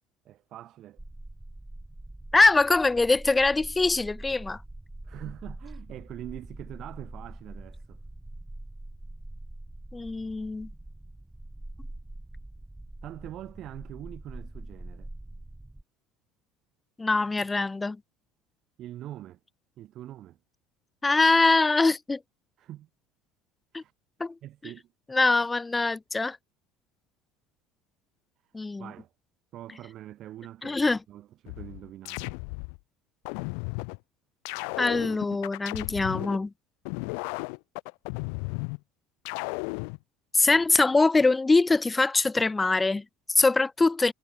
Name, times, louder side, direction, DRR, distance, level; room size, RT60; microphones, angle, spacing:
voice 1, 0.3-1.0 5.0-8.0 13.0-15.1 18.8-19.4 19.8-20.4 22.6-22.9 23.7-23.9 24.4-24.9 28.8-29.1 29.5-32.4 40.5-40.6, right 13 dB, 50° right, 7.1 m, -43 dB
sound 1, 1.0-15.8, right 1 dB, 5° right, 2.2 m, -44 dB
voice 2, 2.3-4.6 9.9-10.7 17.0-18.0 21.0-22.2 23.7-23.8 24.2-24.3 25.1-26.4 28.5-28.9 30.6-31.0 34.8-36.5 40.3-44.1, left 3 dB, 15° left, 0.4 m, -23 dB
sound 2, 31.5-32.8 33.3-34.0 34.5-36.4 36.9-38.8 39.3-40.0, left 40 dB or more, 80° left, 0.4 m, -34 dB
supercardioid pair, 110°, 0 cm